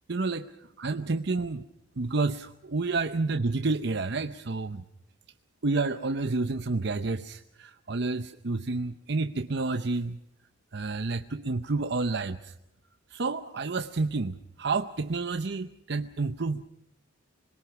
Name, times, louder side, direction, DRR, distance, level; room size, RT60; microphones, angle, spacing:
voice 1, 0.1-0.5 0.8-1.6 2.0-4.8 5.6-10.2 10.7-12.5 13.1-16.7, right 3 dB, 60° right, 9 dB, 0.8 m, -30 dB
26.5 x 21.5 x 5.9 m, 0.80 s
head